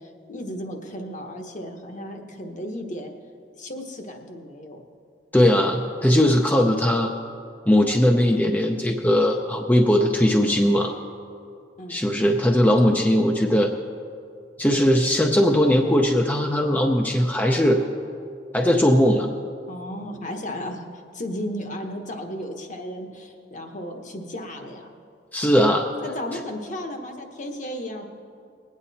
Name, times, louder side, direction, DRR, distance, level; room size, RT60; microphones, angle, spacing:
voice 1, 0.3-3.1 3.6-4.8 11.8-12.0 19.7-20.9 21.1-24.9 26.0-28.0, equal, 45° left, 4 dB, 1.2 m, -34 dB
voice 2, 5.3-7.1 7.7-10.9 11.9-13.7 14.6-17.8 18.5-19.3 25.3-25.9, equal, 10° left, 2 dB, 0.5 m, -19 dB
20.0 x 8.9 x 4.2 m, 2.4 s
head